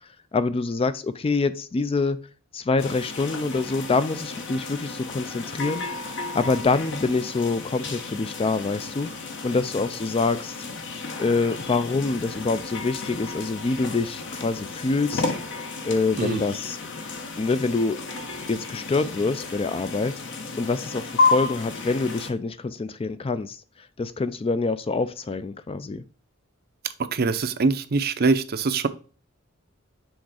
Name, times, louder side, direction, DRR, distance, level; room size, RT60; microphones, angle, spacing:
voice 1, 0.3-2.2 2.5-5.9 6.3-9.1 9.4-10.6 11.2-15.3 15.8-16.8 17.4-18.0 18.5-23.6 24.0-26.0, left 3 dB, 25° left, 0.4 m, -26 dB
sound 1, 2.8-22.3, left 3 dB, 60° left, 1.1 m, -32 dB
voice 2, 27.1-28.9, right 4 dB, 50° right, 0.6 m, -23 dB
6.3 x 3.5 x 4.8 m
head